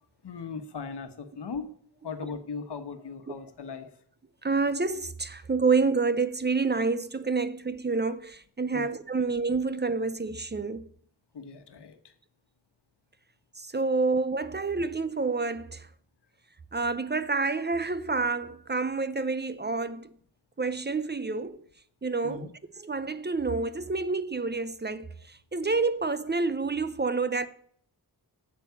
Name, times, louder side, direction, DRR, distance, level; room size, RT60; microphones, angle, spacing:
voice 1, 0.2-1.7 2.0-4.0 8.7-8.9 11.3-12.1 22.2-22.5, left 5 dB, 85° left, 1.3 m, -38 dB
voice 2, 4.4-10.9 13.6-15.9 16.7-20.1 20.6-21.7 22.0-22.5 22.8-27.5, right 4 dB, 25° right, 0.5 m, -28 dB
8.3 x 7.4 x 6.9 m
wide cardioid pair, 105°, 40 cm